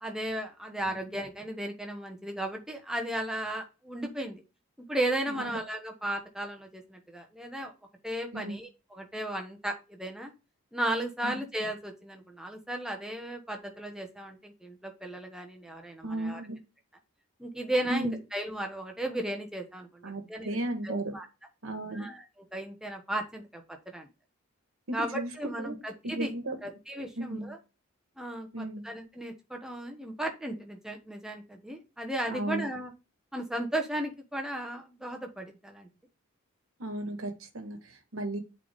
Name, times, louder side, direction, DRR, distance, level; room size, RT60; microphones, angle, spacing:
voice 1, 0.0-4.4 4.8-7.7 8.0-10.3 10.7-16.4 17.4-20.6 20.8-21.3 21.9-22.2 22.5-24.1 24.9-26.3 26.6-27.6 28.2-32.9 33.3-35.9, right 1 dB, 5° right, 2 dB, 1.1 m, -35 dB
voice 2, 5.3-5.6 8.3-8.6 11.2-11.4 16.0-16.6 17.9-18.2 20.0-21.1 21.6-22.1 24.9-25.7 26.0-26.6 27.2-27.5 28.5-28.9 32.3-32.6 36.8-38.4, right 1 dB, 75° right, 5 dB, 1.4 m, -35 dB
8.5 x 4.1 x 3.5 m, 0.29 s
head